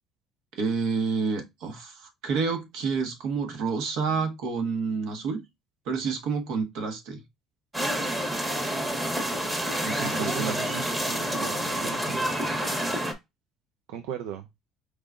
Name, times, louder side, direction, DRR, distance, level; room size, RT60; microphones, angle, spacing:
voice 1, 0.5-5.4 5.9-7.2 9.7-10.6, right 5 dB, 75° right, 1.3 m, -29 dB
sound 1, 7.7-13.1, equal, 10° right, 1.2 m, -28 dB
voice 2, 10.0-12.3 13.9-14.5, right 8 dB, 90° right, 0.6 m, -37 dB
4.8 x 3.7 x 2.5 m
cardioid pair, 145°, 0 cm